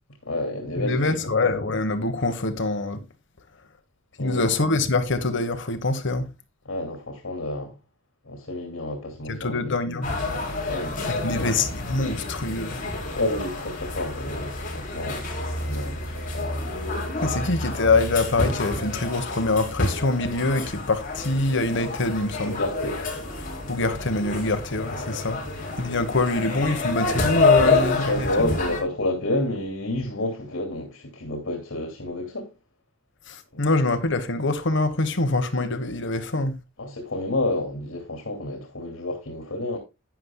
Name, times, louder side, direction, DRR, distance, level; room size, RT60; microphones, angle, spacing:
voice 1, 0.3-1.1 4.2-4.5 6.6-7.7 8.2-9.7 10.7-11.5 13.2-15.3 15.5-16.5 17.3-17.5 22.4-23.0 27.6-32.5 33.5-33.7 36.3-36.4 36.8-39.8, left 1 dB, 80° left, 2.7 m, -30 dB
voice 2, 0.8-3.0 4.2-6.3 9.3-10.1 11.0-12.8 17.2-22.6 23.7-25.4 25.8-28.5 33.3-36.6, left 2 dB, 60° left, 1.3 m, -24 dB
sound 1, 10.0-28.8, left 3 dB, 40° left, 3.9 m, -28 dB
12.0 x 9.6 x 2.3 m
head